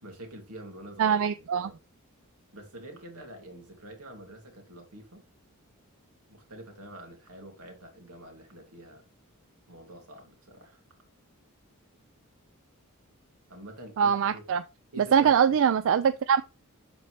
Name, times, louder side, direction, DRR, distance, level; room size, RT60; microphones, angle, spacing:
voice 1, 0.0-1.8 2.5-5.2 6.3-9.0 9.7-10.8 13.5-14.4 14.9-15.6, right 1 dB, 85° right, 2.5 m, -46 dB
voice 2, 1.0-1.7 14.0-14.6 15.0-16.4, right 7 dB, 60° right, 0.3 m, -23 dB
11.5 x 4.4 x 3.2 m
head